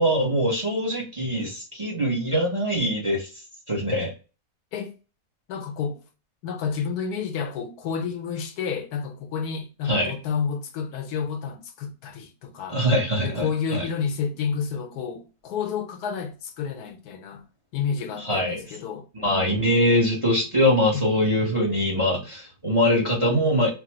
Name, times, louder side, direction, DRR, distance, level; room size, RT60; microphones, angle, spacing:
voice 1, 0.0-4.1 9.8-10.1 12.7-13.8 18.2-18.6 19.1-23.7, equal, 25° right, 0.8 m, -23 dB
voice 2, 5.5-6.0 6.4-12.8 13.2-17.4 17.7-19.1 20.9-21.1, left 6 dB, 85° left, 1.2 m, -30 dB
3.3 x 2.2 x 2.9 m
omnidirectional pair, 1.6 m